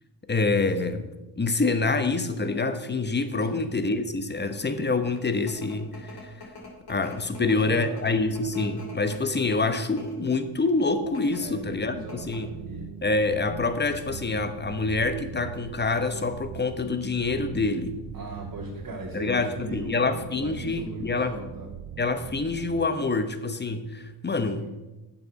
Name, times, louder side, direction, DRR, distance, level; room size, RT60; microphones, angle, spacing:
voice 1, 0.3-1.1 1.4-6.5 6.9-12.5 13.0-18.0 19.1-21.4 22.0-24.6, left 3 dB, 20° left, 10 dB, 1.0 m, -26 dB
voice 2, 3.4-3.7 7.3-8.0 11.3-12.9 18.1-19.9 20.3-21.7 24.5-24.7, right 1 dB, 40° right, -3 dB, 2.1 m, -38 dB
sound 1, 4.9-20.1, left 3 dB, 50° left, 2.8 m, -47 dB
sound 2, 10.7-22.9, right 9 dB, 65° right, 1.0 m, -42 dB
8.6 x 7.1 x 5.3 m, 1.0 s
supercardioid pair, 60°, 48 cm